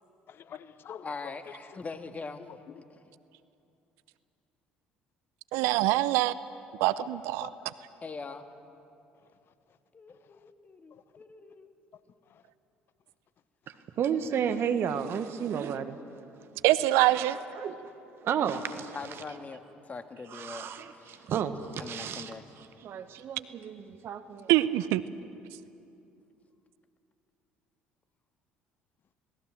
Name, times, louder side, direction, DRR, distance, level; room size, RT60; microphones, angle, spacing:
voice 1, 0.3-1.4 2.5-2.8 7.0-7.1 7.4-7.7 12.3-12.4, left 9 dB, 50° left, 1.0 m, -46 dB
voice 2, 1.0-2.4 2.9-3.1 8.0-8.4 9.9-11.7 18.9-21.3 21.8-22.4, left 4 dB, 30° left, 1.9 m, -42 dB
voice 3, 5.5-6.3 6.8-7.5 16.6-17.4 24.5-25.0, right 16 dB, 70° right, 0.6 m, -24 dB
voice 4, 13.7-16.0 17.0-17.9 18.2-19.0 20.3-24.5, right 8 dB, 55° right, 1.5 m, -33 dB
26.5 x 19.5 x 7.8 m
hypercardioid pair, 60°, 5 cm